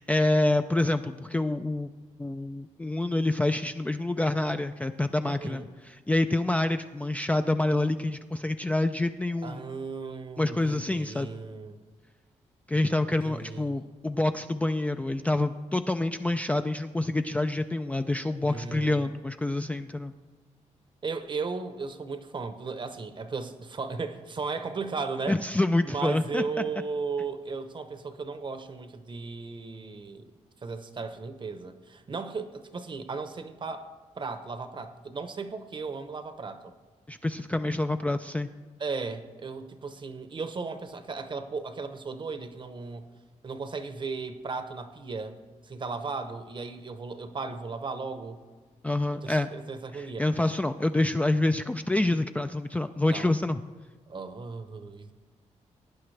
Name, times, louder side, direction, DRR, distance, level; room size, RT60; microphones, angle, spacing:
voice 1, 0.0-1.9 2.2-9.7 10.4-11.3 12.7-20.1 25.3-26.4 37.1-38.5 48.8-49.5 49.9-53.6, left 2 dB, 10° left, 7 dB, 0.3 m, -27 dB
voice 2, 5.3-5.7 9.4-11.8 13.2-13.8 18.4-19.0 21.0-25.4 25.8-30.3 30.6-33.9 34.2-36.7 38.8-43.1 43.4-45.4 45.6-48.4 49.2-50.3 53.1-53.3 54.1-55.1, right 4 dB, 40° right, 10 dB, 0.8 m, -36 dB
18.0 x 9.4 x 3.3 m, 1.4 s
cardioid pair, 100°, 13 cm